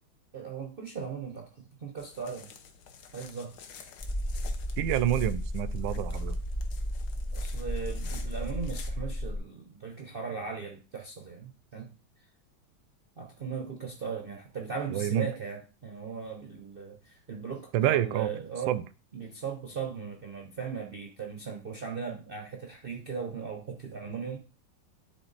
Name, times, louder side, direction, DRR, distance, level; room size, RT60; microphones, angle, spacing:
voice 1, 0.3-2.5 3.1-3.6 7.3-11.9 13.2-18.8 19.1-24.4, right 6 dB, 60° right, 2 dB, 0.6 m, -38 dB
sound 1, 2.0-8.9, left 7 dB, 60° left, 1.3 m, -50 dB
sound 2, 4.0-9.4, equal, 35° left, 0.8 m, -33 dB
voice 2, 4.8-6.4 14.9-15.3 17.7-18.3 18.7-18.8, right 12 dB, 75° right, 16 dB, 1.2 m, -27 dB
10.5 x 3.9 x 4.0 m, 0.34 s
omnidirectional pair, 2.2 m